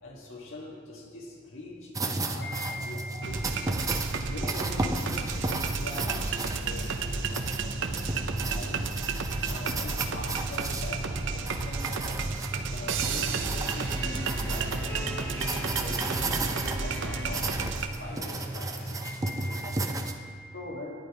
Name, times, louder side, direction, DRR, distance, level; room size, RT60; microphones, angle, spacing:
voice 1, 0.0-3.6 4.2-8.9 9.5-12.3 12.7-19.0 19.3-19.9 20.5-20.9, left 2 dB, 65° left, -3 dB, 1.9 m, -43 dB
sound 1, 1.9-20.1, right 2 dB, 15° right, 0.5 m, -33 dB
voice 2, 2.4-4.3 19.0-20.6, left 2 dB, 50° left, -4 dB, 3.3 m, -43 dB
sound 2, 3.2-17.9, right 4 dB, 60° right, 0.7 m, -33 dB
sound 3, 13.6-18.9, equal, 10° left, 1.9 m, -42 dB
11.0 x 9.3 x 4.9 m, 2.2 s
head